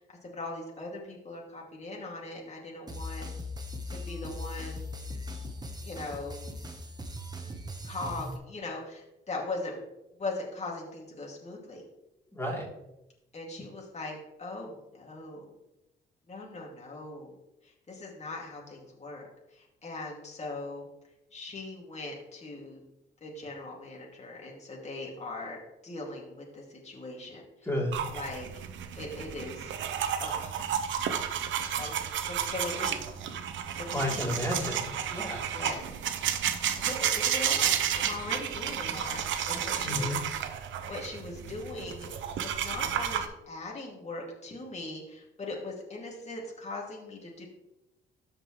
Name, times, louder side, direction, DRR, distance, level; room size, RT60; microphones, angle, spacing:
voice 1, 0.0-3.2 3.9-4.9 5.8-6.4 7.8-9.8 10.2-11.8 13.3-15.5 16.3-17.3 17.6-20.9 21.3-22.8 23.2-27.7 28.1-28.5 29.0-29.7 30.2-30.5 31.8-33.1 33.8-34.4 35.5-36.0 36.7-40.1 40.5-47.4, left 2 dB, 35° left, -2 dB, 2.4 m, -40 dB
sound 1, 2.9-8.4, left 1 dB, 20° right, 1.2 m, -39 dB
voice 2, 12.3-12.7 27.6-28.0 33.9-35.5 39.8-40.2, left 1 dB, 15° left, -3 dB, 3.3 m, -32 dB
sound 2, 27.9-43.3, right 9 dB, 75° right, 0.8 m, -32 dB
13.5 x 5.3 x 3.2 m, 0.88 s
cardioid pair, 90°, 20 cm